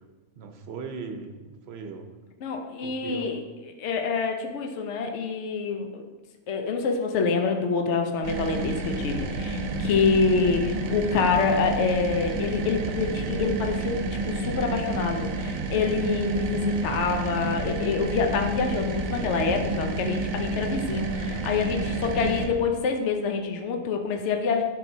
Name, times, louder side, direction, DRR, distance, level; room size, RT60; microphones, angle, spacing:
voice 1, 0.3-2.1 2.8-3.3, right 4 dB, 60° right, 5 dB, 0.9 m, -38 dB
voice 2, 2.4-3.4 3.8-6.0 6.5-13.9 14.3-24.6, left 5 dB, 65° left, 3 dB, 1.0 m, -26 dB
sound 1, 8.2-22.5, right 3 dB, 85° right, 1.1 m, -30 dB
10.0 x 4.8 x 2.7 m, 1.3 s
omnidirectional pair, 1.4 m